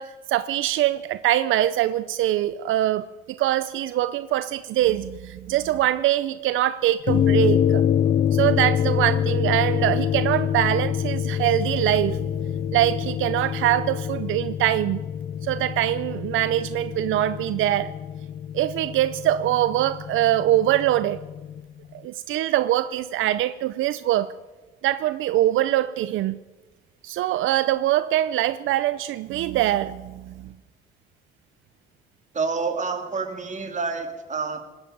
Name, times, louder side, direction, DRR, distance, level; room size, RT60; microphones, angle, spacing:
voice 1, 0.0-7.8 8.3-12.3 12.7-15.0 15.4-17.9 18.5-21.2 22.0-24.3 24.8-26.4 27.0-30.5, right 13 dB, 80° right, 14 dB, 0.5 m, -23 dB
sound 1, 7.1-21.6, left 9 dB, 45° left, 0.4 m, -26 dB
voice 2, 32.3-34.6, right 4 dB, 35° right, 5 dB, 2.4 m, -28 dB
19.5 x 8.1 x 9.0 m, 1.2 s
cardioid pair, 90°, 20 cm